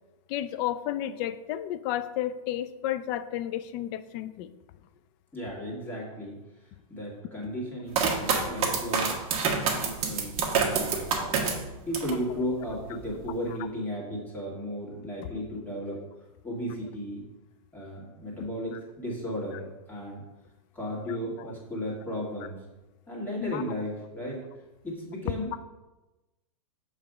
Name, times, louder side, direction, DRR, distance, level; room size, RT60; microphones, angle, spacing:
voice 1, 0.3-4.5 23.4-23.6, left 12 dB, 35° left, 13 dB, 0.4 m, -32 dB
voice 2, 5.3-6.4 6.9-9.1 9.4-11.5 11.9-16.0 16.4-17.2 17.7-20.2 20.7-22.6 23.1-24.4 24.8-25.6, equal, 10° left, -5 dB, 2.1 m, -35 dB
sound 1, 7.9-12.2 12.7-13.3, right 5 dB, 35° right, 1.2 m, -27 dB
7.0 x 3.3 x 5.0 m, 1.1 s
hypercardioid pair, 140°, 18 cm